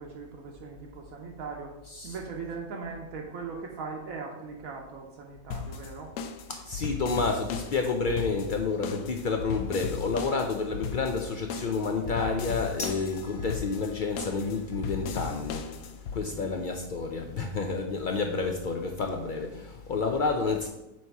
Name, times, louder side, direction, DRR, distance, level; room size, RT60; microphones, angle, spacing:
voice 1, 0.0-1.7 2.0-6.1 16.2-16.6, right 5 dB, 75° right, 0 dB, 1.2 m, -39 dB
sound 1, 5.5-16.2, left 6 dB, 90° left, 1.0 m, -36 dB
voice 2, 6.5-15.7 16.1-20.7, left 4 dB, 75° left, 3 dB, 0.4 m, -29 dB
sound 2, 12.8-19.4, left 1 dB, 40° left, 1.8 m, -47 dB
7.5 x 2.8 x 4.5 m, 0.94 s
omnidirectional pair, 1.5 m